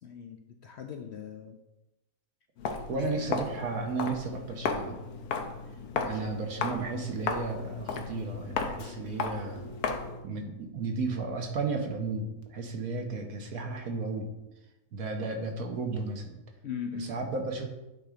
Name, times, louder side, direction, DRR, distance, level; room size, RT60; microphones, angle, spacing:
voice 1, 0.0-1.6 5.9-6.2 16.6-17.1, left 7 dB, 65° left, 5 dB, 0.7 m, -40 dB
Walk footsteps, 2.6-10.2, left 5 dB, 80° left, 1.3 m, -35 dB
voice 2, 2.9-5.0 6.0-9.7 10.2-14.3 14.9-16.4 17.1-17.6, right 3 dB, 75° right, 3 dB, 1.4 m, -33 dB
8.7 x 3.8 x 4.9 m, 1.0 s
omnidirectional pair, 1.6 m